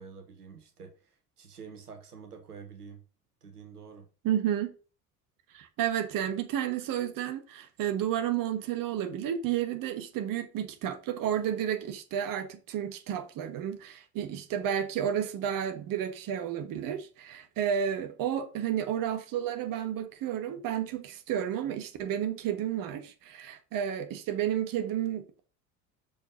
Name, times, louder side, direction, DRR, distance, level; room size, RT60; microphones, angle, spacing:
voice 1, 0.0-3.0 3.4-4.1, right 6 dB, 85° right, 1.3 m, -48 dB
voice 2, 4.2-4.7 5.5-25.4, right 10 dB, 45° right, 1.5 m, -31 dB
6.6 x 5.4 x 5.2 m
figure-of-eight pair, 65°, 45 cm